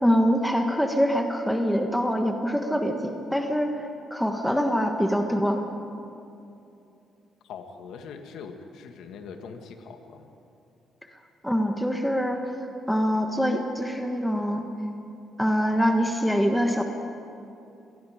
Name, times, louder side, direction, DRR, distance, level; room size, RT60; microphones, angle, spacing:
voice 1, 0.0-3.7 4.1-5.6 11.4-12.4 12.9-14.7 15.4-16.8, equal, ahead, 3 dB, 1.5 m, -24 dB
voice 2, 7.4-10.3, left 5 dB, 80° left, 5 dB, 1.8 m, -42 dB
26.5 x 19.5 x 5.1 m, 2.8 s
cardioid pair, 90°, 0 cm